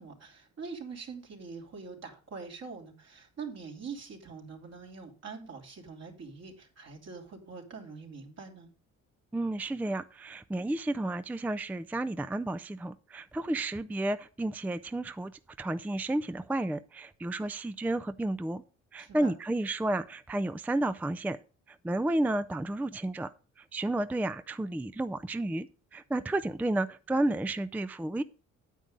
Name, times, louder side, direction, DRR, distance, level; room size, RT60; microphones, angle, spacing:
voice 1, 0.0-8.7 19.0-19.4, right 5 dB, 60° right, 2 dB, 3.1 m, -44 dB
voice 2, 9.3-15.3 15.6-18.6 18.9-21.4 21.8-23.3 23.7-25.7 25.9-28.2, right 1 dB, 5° right, 13 dB, 0.4 m, -31 dB
9.1 x 8.9 x 3.8 m, 0.37 s
cardioid pair, 90°, 30 cm